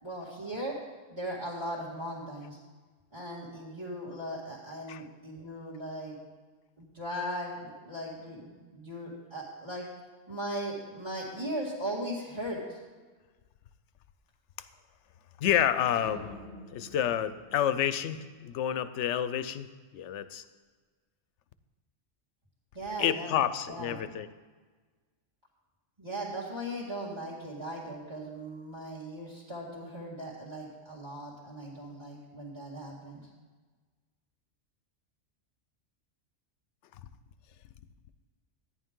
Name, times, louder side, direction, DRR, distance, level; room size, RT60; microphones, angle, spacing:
voice 1, 0.0-0.8 1.1-2.6 3.1-6.2 6.8-9.9 10.3-12.8 22.7-23.4 23.7-24.0 26.0-33.3, right 1 dB, 20° right, -7 dB, 2.0 m, -38 dB
voice 2, 15.4-16.4 16.7-19.7 19.9-20.4 23.0-24.3, left 10 dB, 70° left, 13 dB, 0.9 m, -29 dB
sound 1, 15.9-18.5, left 1 dB, 85° right, 3.6 m, -48 dB
13.5 x 10.0 x 3.7 m, 1.4 s
omnidirectional pair, 1.3 m